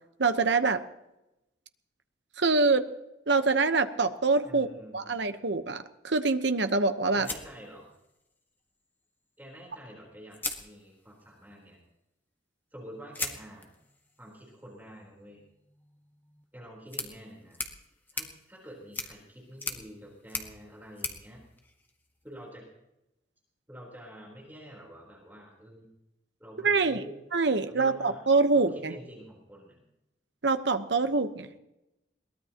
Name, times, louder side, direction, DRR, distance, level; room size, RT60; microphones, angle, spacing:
voice 1, 0.2-0.8 2.4-2.9 3.3-4.7 4.9-7.3 26.6-27.0 27.3-29.0 30.4-31.5, right 3 dB, 70° right, 9 dB, 1.0 m, -25 dB
voice 2, 4.4-5.1 7.1-7.9 9.4-11.8 12.7-13.7 14.2-15.4 16.5-17.6 18.1-21.4 22.2-22.7 23.7-25.8 26.4-27.1 27.7-28.3 28.5-29.8, equal, 10° right, -3 dB, 3.9 m, -48 dB
sound 1, 7.2-8.4 9.7-9.8 10.3-11.3 13.1-22.3, left 3 dB, 10° left, 1.5 m, -41 dB
22.5 x 19.0 x 3.0 m, 0.91 s
head